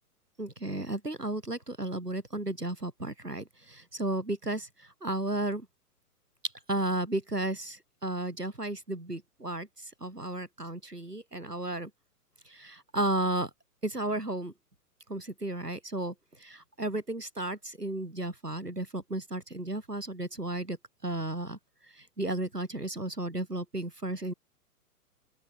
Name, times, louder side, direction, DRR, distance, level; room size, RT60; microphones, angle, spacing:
voice 1, 0.4-5.7 6.7-11.9 12.5-13.5 13.8-14.5 15.1-20.8 21.0-21.6 21.9-24.3, right 2 dB, 85° right, 5.9 m, -34 dB
open air
figure-of-eight pair, 120°, 46 cm